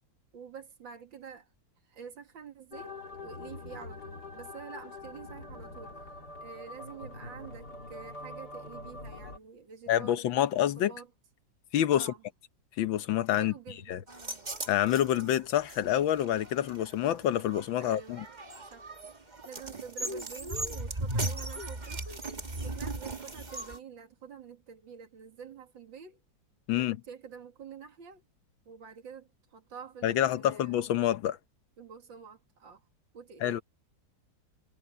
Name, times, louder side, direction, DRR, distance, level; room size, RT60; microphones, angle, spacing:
voice 1, 0.3-1.5 1.8-6.0 6.4-11.1 11.9-12.2 13.4-14.0 17.8-18.2 18.7-19.0 19.4-22.3 22.6-26.2 26.8-28.2 28.7-30.8 31.8-32.8 33.1-33.6, right 6 dB, 80° right, 2.9 m, -48 dB
sound 1, 2.7-9.4, left 2 dB, 55° left, 3.5 m, -44 dB
voice 2, 9.9-10.9 11.7-12.1 12.8-13.5 13.9-14.0 14.7-18.2 26.7-27.0 30.0-31.4 33.4-33.6, left 11 dB, 85° left, 1.7 m, -27 dB
sound 2, 14.1-23.8, right 2 dB, 25° right, 1.7 m, -38 dB
omnidirectional pair, 2.1 m